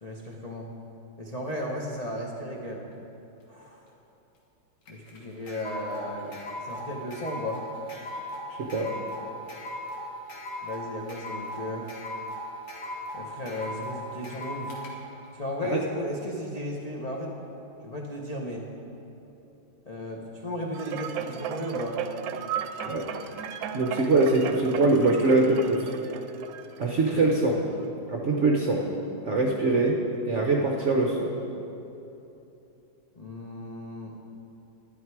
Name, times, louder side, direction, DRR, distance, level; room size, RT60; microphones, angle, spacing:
voice 1, 0.0-0.7 1.2-2.8 3.5-3.8 4.9-7.6 10.6-11.9 13.1-14.8 15.3-17.3 17.8-18.6 19.9-22.0 33.2-34.1, left 1 dB, 40° left, -3 dB, 0.5 m, -35 dB
sound 1, 4.9-14.9, left 1 dB, 80° left, 2.3 m, -38 dB
sound 2, 20.7-27.3 27.8-27.9, right 7 dB, 75° right, 1.2 m, -35 dB
voice 2, 23.7-25.8 26.8-27.6 28.1-28.8 29.2-30.0 30.3-31.3, right 2 dB, 55° right, -1 dB, 0.8 m, -23 dB
11.0 x 11.0 x 4.7 m, 3.0 s
omnidirectional pair, 2.2 m